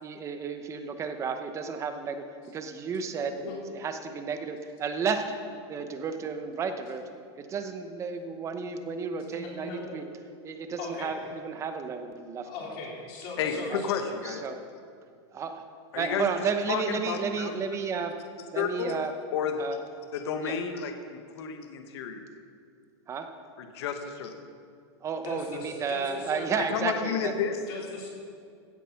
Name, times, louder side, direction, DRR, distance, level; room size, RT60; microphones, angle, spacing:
voice 1, 0.0-5.3 5.7-7.0 7.4-10.0 10.4-12.5 13.5-13.8 14.2-14.6 15.3-15.6 15.9-18.1 18.5-19.1 19.6-19.8 20.4-20.6 23.1-23.3 25.0-27.3, right 5 dB, 20° right, 8 dB, 0.9 m, -32 dB
voice 2, 9.3-10.1 10.8-11.2 12.4-14.0 25.2-26.7 27.7-28.1, left 3 dB, 45° left, -3 dB, 4.0 m, -39 dB
voice 3, 13.4-14.4 15.9-16.3 16.7-17.8 18.5-18.9 19.3-19.6 20.1-22.3 23.6-24.5 26.6-27.6, left 7 dB, 65° left, 6 dB, 1.4 m, -31 dB
16.0 x 8.4 x 5.9 m, 2.3 s
supercardioid pair, 155°, 14 cm